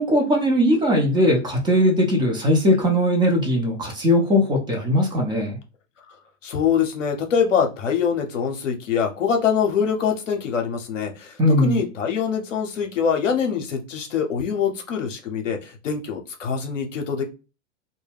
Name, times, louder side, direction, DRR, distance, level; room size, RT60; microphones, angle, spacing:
voice 1, 0.0-5.6 11.4-11.8, equal, 10° right, 1 dB, 0.5 m, -19 dB
voice 2, 6.4-17.2, left 7 dB, 75° left, 4 dB, 0.7 m, -24 dB
2.1 x 2.1 x 3.3 m, 0.30 s
figure-of-eight pair, 100°, 38 cm